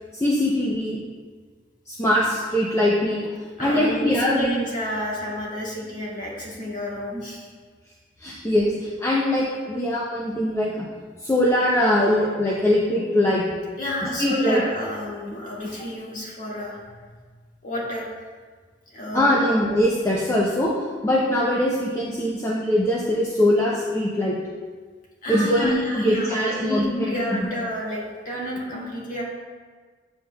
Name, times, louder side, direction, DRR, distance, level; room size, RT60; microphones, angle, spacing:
voice 1, 0.1-1.0 1.9-3.3 3.6-4.5 8.2-10.9 11.2-13.4 14.0-14.6 19.1-20.7 21.0-24.4 25.3-27.5 28.7-28.8, left 1 dB, 15° left, -4 dB, 0.6 m, -22 dB
voice 2, 3.6-7.5 13.8-17.2 17.6-18.1 18.9-19.5 25.2-29.2, equal, 50° left, -4 dB, 1.7 m, -30 dB
7.9 x 7.5 x 2.3 m, 1.5 s
head